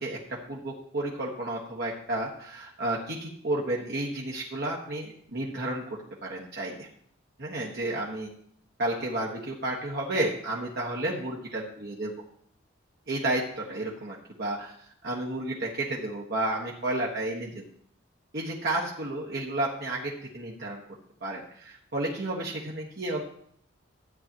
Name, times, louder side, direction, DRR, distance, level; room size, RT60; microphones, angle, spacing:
voice 1, 0.0-6.9 7.4-8.3 8.8-12.1 13.1-14.7 15.0-17.6 18.3-20.8 21.2-23.2, right 1 dB, 55° right, -3 dB, 1.5 m, -32 dB
13.5 x 8.7 x 3.0 m, 0.64 s
head